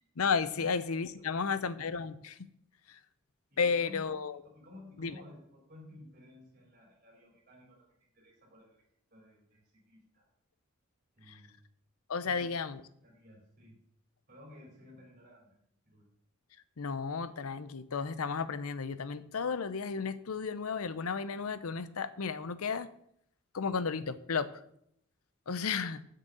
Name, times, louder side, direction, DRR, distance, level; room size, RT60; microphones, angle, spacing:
voice 1, 0.2-2.4 2.9-3.0 3.6-4.4 5.0-5.1 11.3-11.4 12.1-12.8 16.8-22.9 23.5-24.5 25.5-26.0, left 5 dB, 85° left, 15 dB, 0.7 m, -33 dB
voice 2, 1.2-1.6 3.5-4.1 4.4-7.9 8.1-8.8 9.1-10.3 11.1-11.7 12.2-12.7 13.0-13.8 14.3-15.6 15.9-16.1, left 1 dB, 40° right, -3 dB, 3.7 m, -54 dB
7.7 x 6.5 x 7.9 m, 0.72 s
head